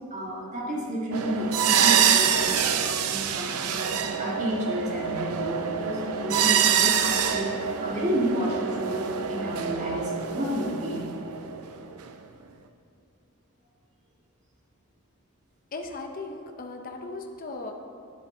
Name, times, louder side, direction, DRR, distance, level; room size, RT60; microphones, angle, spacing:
voice 1, 0.1-11.1, equal, 35° right, -3 dB, 1.7 m, -31 dB
sound 1, 1.1-12.1, right 8 dB, 85° right, 0.6 m, -26 dB
voice 2, 15.7-17.7, left 3 dB, 40° left, 3 dB, 0.7 m, -37 dB
11.0 x 7.6 x 3.7 m, 2.4 s
head